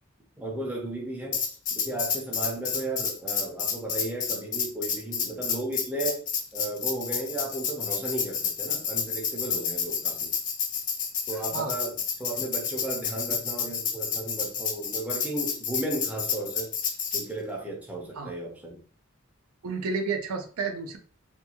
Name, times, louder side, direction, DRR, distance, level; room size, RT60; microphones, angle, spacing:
voice 1, 0.4-1.4 1.7-6.3 6.5-10.3 11.3-16.7 17.1-18.8, right 2 dB, 5° right, 0.6 m, -34 dB
Tambourine, 1.3-17.3, left 6 dB, 35° left, 0.4 m, -30 dB
voice 2, 19.6-21.0, right 4 dB, 80° right, 0.5 m, -31 dB
2.5 x 2.2 x 2.8 m
head